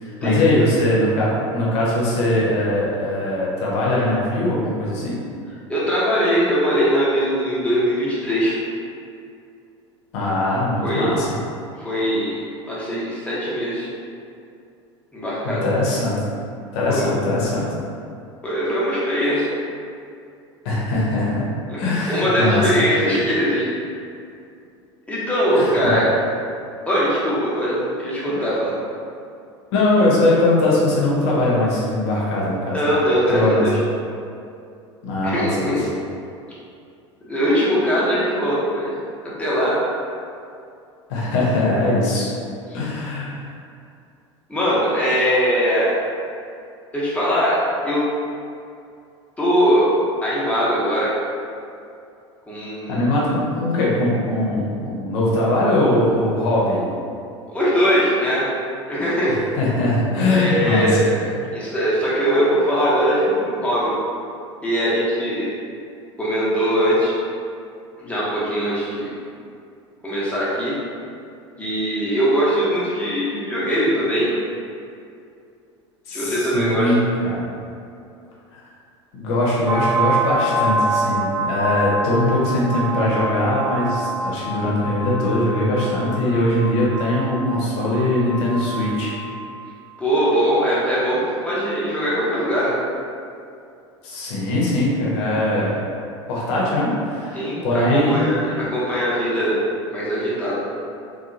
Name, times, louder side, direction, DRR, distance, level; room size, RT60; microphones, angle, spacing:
voice 1, 0.0-5.2 10.1-11.3 15.4-16.2 16.7-17.6 20.6-21.5 21.8-22.7 25.6-26.0 29.7-32.8 33.3-33.6 35.0-35.7 41.1-42.3 42.7-43.4 52.9-56.9 59.3-60.9 76.1-77.5 78.5-78.6 79.1-89.1 94.0-95.7 96.3-98.2 98.5-98.6, left 1 dB, 60° left, -5 dB, 0.7 m, -21 dB
voice 2, 5.7-8.6 10.8-11.1 11.8-12.3 12.7-13.9 15.1-15.6 16.9-17.1 18.4-19.5 21.7-21.8 22.1-23.7 25.1-26.1 26.8-28.7 32.7-33.8 35.2-35.8 37.3-38.9 39.2-39.8 44.5-45.9 46.9-47.6 47.8-48.1 49.4-49.9 50.2-51.1 52.5-52.9 57.5-58.5 58.9-59.4 60.3-61.2 61.5-63.9 64.6-65.5 66.2-67.2 68.0-69.1 70.0-70.7 71.6-74.3 76.1-77.0 90.0-92.7 97.3-99.6 99.9-100.6, equal, 10° left, -9 dB, 0.9 m, -21 dB
sound 1, 79.7-89.1, right 2 dB, 60° right, 0.5 m, -26 dB
2.7 x 2.2 x 2.5 m, 2.5 s
figure-of-eight pair, 75°, 16 cm